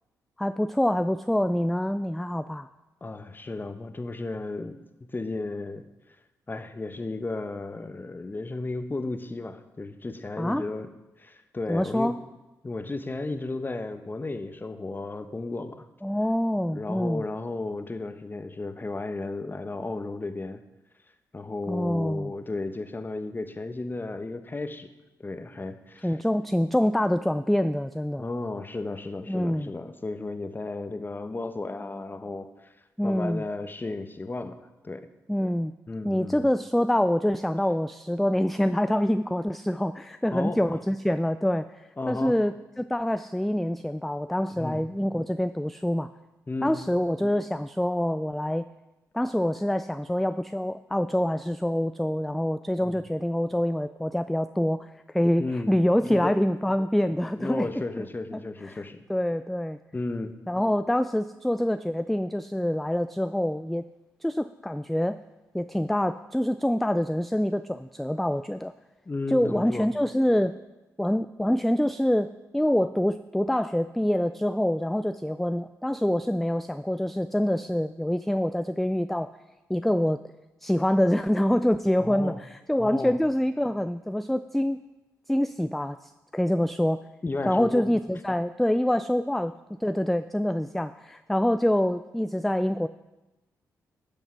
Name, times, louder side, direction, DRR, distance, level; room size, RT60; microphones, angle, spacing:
voice 1, 0.4-2.7 10.4-10.6 11.7-12.1 16.0-17.2 21.7-22.3 26.0-28.2 29.3-29.7 33.0-33.4 35.3-35.7 36.0-46.1 46.6-48.7 49.1-57.7 58.0-58.1 58.3-58.8 59.1-59.8 60.5-63.9 64.2-65.2 65.5-68.7 69.3-70.5 71.0-79.3 79.7-80.2 80.6-84.8 85.3-87.0 87.5-89.5 89.8-92.9, left 1 dB, ahead, 12 dB, 0.3 m, -26 dB
voice 2, 3.0-4.8 5.1-5.9 6.5-10.9 11.2-12.1 12.6-15.9 16.7-20.6 21.3-24.9 25.2-26.2 28.2-32.7 33.0-35.1 35.9-36.5 40.3-40.6 42.0-42.4 44.6-44.8 46.5-46.8 52.8-53.0 55.4-55.7 56.0-56.3 57.4-59.0 59.9-60.3 69.1-69.9 82.0-82.4 82.8-83.2 87.2-87.8, left 2 dB, 25° left, 10 dB, 0.9 m, -34 dB
11.0 x 5.3 x 5.8 m, 1.1 s
supercardioid pair, 50°, 8 cm